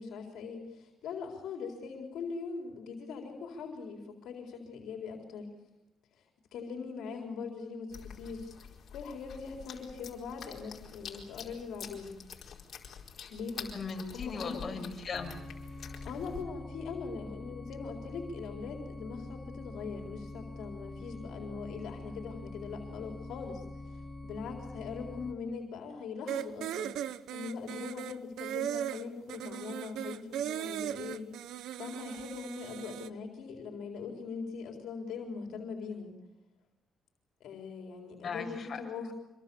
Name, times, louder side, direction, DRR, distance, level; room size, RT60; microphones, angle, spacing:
voice 1, 0.0-5.5 6.1-6.2 6.5-8.5 8.9-12.1 13.3-13.7 14.1-14.7 16.0-31.3 31.8-36.1 37.4-39.1, left 5 dB, 80° left, 2 dB, 4.1 m, -41 dB
sound 1, 7.9-16.4, left 7 dB, 60° left, 4.7 m, -47 dB
voice 2, 13.7-15.4 38.2-38.8, left 5 dB, 40° left, 1 dB, 6.3 m, -38 dB
sound 2, 15.1-25.3, left 2 dB, 5° left, 2.6 m, -45 dB
sound 3, 26.3-33.1, right 11 dB, 85° right, 0.9 m, -38 dB
26.0 x 23.5 x 7.1 m, 0.98 s
cardioid pair, 90°, 0 cm